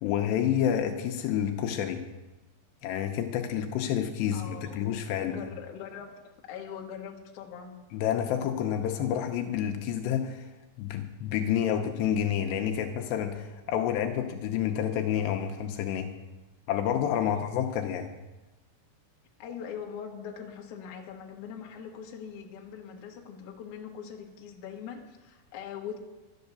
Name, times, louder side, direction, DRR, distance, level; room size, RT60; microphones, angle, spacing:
voice 1, 0.0-2.0 2.8-5.4 7.9-10.5 10.8-16.1 16.7-18.1, left 9 dB, 80° left, 4 dB, 2.8 m, -29 dB
voice 2, 4.3-7.8 17.2-17.5 19.4-26.0, left 7 dB, 60° left, 1 dB, 2.2 m, -42 dB
12.0 x 10.5 x 6.9 m, 1.1 s
omnidirectional pair, 5.2 m